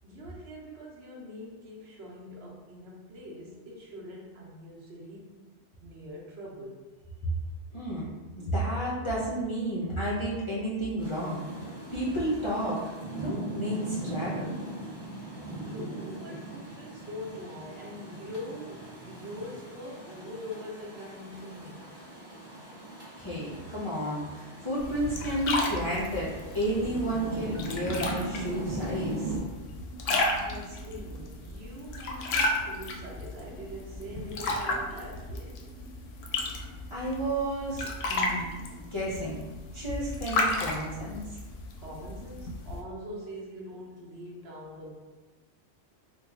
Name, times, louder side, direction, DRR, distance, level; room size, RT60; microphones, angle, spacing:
voice 1, 0.0-5.4 5.8-6.8 15.5-21.8 30.0-35.5 41.8-44.9, equal, 60° right, -3 dB, 1.0 m, -43 dB
voice 2, 7.7-8.1 8.4-11.4 11.9-12.8 13.1-14.5 23.2-29.3 36.9-39.4 39.7-41.2, right 1 dB, 40° left, -8 dB, 0.4 m, -31 dB
Rain, 11.0-29.4, right 1 dB, 25° right, 0.9 m, -40 dB
sound 1, 24.8-42.8, left 2 dB, 90° left, 0.9 m, -34 dB
3.1 x 2.2 x 3.6 m, 1.2 s
omnidirectional pair, 1.2 m